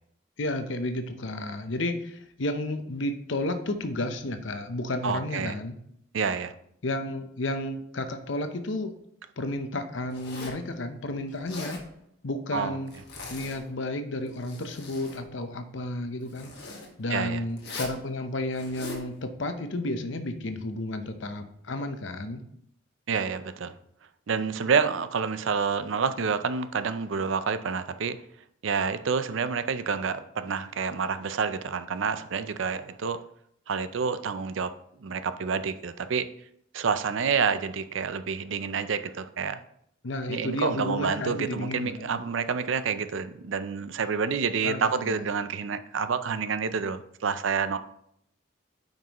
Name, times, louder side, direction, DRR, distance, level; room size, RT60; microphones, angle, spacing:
voice 1, 0.4-5.8 6.8-8.9 9.4-11.8 12.2-12.9 13.3-22.4 40.0-42.1 44.6-45.2, left 1 dB, 70° left, 8 dB, 0.8 m, -32 dB
voice 2, 5.0-5.5 6.1-6.5 12.5-12.8 17.1-17.4 23.1-23.7 24.3-28.2 28.6-33.2 33.7-34.7 35.0-36.3 36.7-39.6 40.3-47.8, right 5 dB, 70° right, 12 dB, 0.5 m, -28 dB
Zipper (clothing), 10.1-10.7 11.3-11.9 12.9-13.6 14.2-15.2 16.3-16.9 17.6-18.0 18.5-19.1, left 2 dB, 55° left, 1.5 m, -40 dB
9.1 x 5.3 x 3.0 m, 0.71 s
head